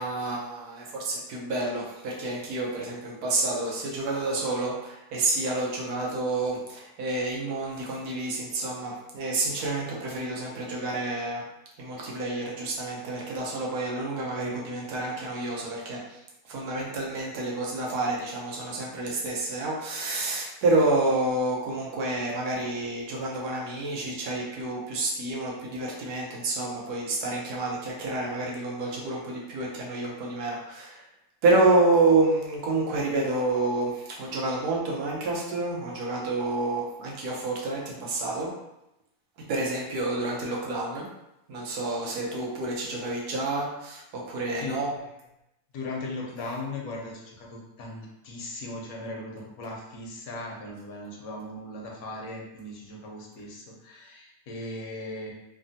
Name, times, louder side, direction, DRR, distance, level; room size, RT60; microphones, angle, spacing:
voice 1, 0.0-11.4 11.8-16.0 16.5-31.0 31.4-38.5 39.5-41.1 41.5-44.9, right 2 dB, 85° right, -2 dB, 1.3 m, -28 dB
voice 2, 44.6-45.1 45.7-55.3, left 2 dB, 75° left, -1 dB, 1.1 m, -38 dB
3.3 x 2.2 x 2.6 m, 0.88 s
omnidirectional pair, 1.6 m